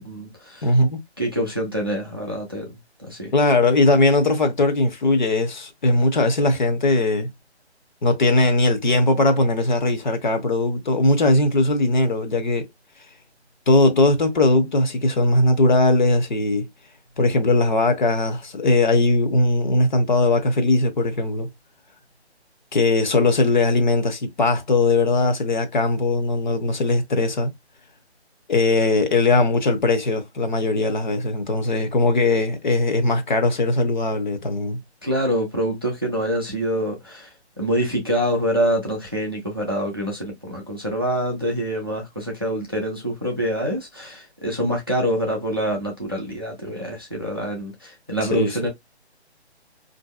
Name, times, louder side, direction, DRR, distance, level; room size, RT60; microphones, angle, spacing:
voice 1, 0.0-0.7 1.2-2.7 3.0-3.3 35.0-48.7, equal, 20° right, 0.4 m, -25 dB
voice 2, 0.6-1.0 3.3-7.3 8.0-12.7 13.7-16.7 17.2-21.5 22.7-27.5 28.5-34.8 48.3-48.6, left 2 dB, 45° left, 0.6 m, -19 dB
3.8 x 2.6 x 2.2 m
figure-of-eight pair, 155°, 34 cm